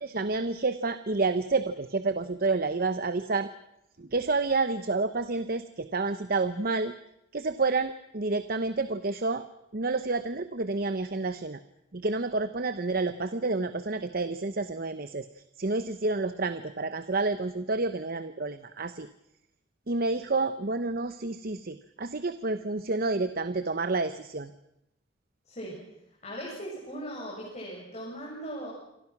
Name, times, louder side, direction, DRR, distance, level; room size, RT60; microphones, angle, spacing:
voice 1, 0.0-3.5 4.0-6.9 7.3-9.5 9.7-11.6 11.9-19.1 19.9-24.5, right 3 dB, 50° right, 11 dB, 0.9 m, -29 dB
voice 2, 26.2-28.7, equal, 35° left, -4 dB, 7.3 m, -38 dB
28.5 x 24.0 x 6.1 m, 0.82 s
head